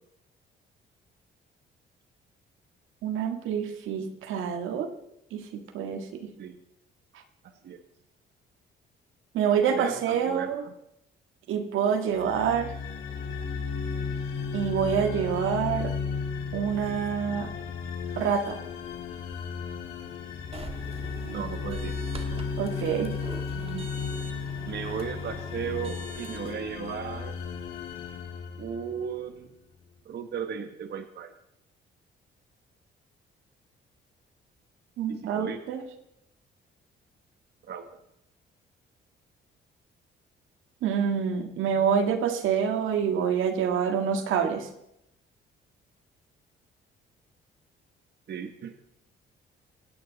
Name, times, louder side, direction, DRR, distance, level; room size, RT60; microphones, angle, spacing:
voice 1, 3.0-4.9 5.3-6.3 9.3-10.6 11.5-12.7 14.5-15.9 16.5-17.5 18.2-18.6 22.6-23.2 35.0-35.8 40.8-44.7, right 7 dB, 85° right, 7 dB, 1.8 m, -27 dB
voice 2, 7.4-7.8 9.7-10.7 21.2-22.0 23.6-23.9 24.7-27.4 28.6-29.5 30.0-31.3 35.1-35.6 37.6-37.9 48.3-48.8, right 7 dB, 60° right, 7 dB, 1.3 m, -36 dB
sound 1, 12.1-29.2, left 5 dB, 85° left, 4.7 m, -34 dB
sound 2, 20.5-26.5, right 2 dB, 30° right, 1.8 m, -44 dB
25.5 x 9.5 x 4.1 m, 0.81 s
cardioid pair, 90°, 20 cm